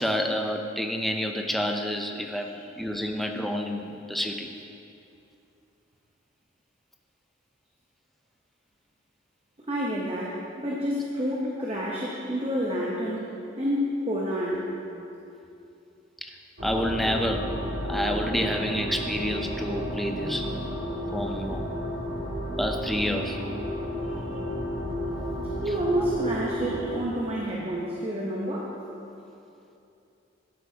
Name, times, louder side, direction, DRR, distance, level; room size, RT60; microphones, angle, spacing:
voice 1, 0.0-4.5 16.6-17.5 17.9-20.5 21.1-21.6 22.6-23.4, equal, ahead, 3 dB, 0.4 m, -28 dB
voice 2, 9.6-13.3 13.6-14.7 24.0-24.1 25.6-28.8, equal, 30° right, -4 dB, 0.8 m, -29 dB
sound 1, 16.6-27.0, equal, 70° right, 2.0 m, -32 dB
13.0 x 8.1 x 2.8 m, 2.7 s
head